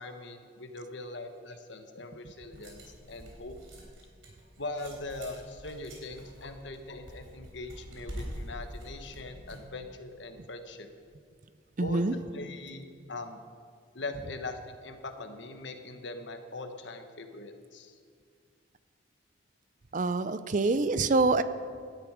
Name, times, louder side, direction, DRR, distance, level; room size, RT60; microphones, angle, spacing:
voice 1, 0.0-3.5 4.6-10.9 11.8-12.0 12.3-13.4 13.9-18.0, left 2 dB, 70° left, 6 dB, 1.3 m, -41 dB
sound 1, 2.4-9.7, equal, 90° right, 4.0 m, -45 dB
voice 2, 11.8-12.2 19.9-21.4, right 3 dB, 40° right, 13 dB, 0.5 m, -25 dB
17.0 x 12.0 x 4.9 m, 2.1 s
head